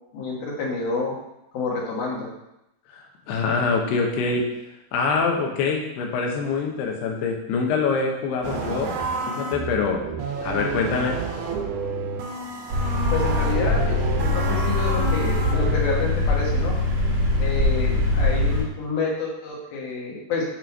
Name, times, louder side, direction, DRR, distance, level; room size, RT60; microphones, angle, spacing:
voice 1, 0.1-1.1 1.5-2.3 13.1-16.8 17.4-20.4, left 3 dB, 70° left, -3 dB, 3.2 m, -28 dB
voice 2, 2.9-4.5 4.9-8.9 9.3-10.0 10.4-11.2, left 4 dB, 85° left, 2 dB, 3.0 m, -24 dB
sound 1, 8.4-15.8, right 4 dB, 80° right, 2.8 m, -30 dB
sound 2, 12.7-18.6, left 2 dB, 35° right, 3.1 m, -22 dB
7.4 x 3.9 x 4.5 m, 0.88 s
omnidirectional pair, 4.6 m